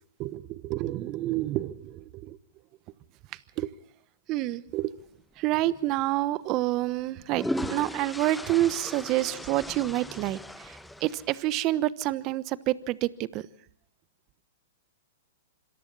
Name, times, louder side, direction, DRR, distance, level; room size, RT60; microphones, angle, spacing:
voice 1, 0.2-2.4 3.3-3.7 4.3-4.9 5.4-13.5, right 16 dB, 40° right, 1.1 m, -28 dB
sound 1, 5.6-5.8 7.0-11.6, left 1 dB, 5° left, 1.0 m, -37 dB
26.5 x 26.5 x 4.1 m
hypercardioid pair, 115°, 0 cm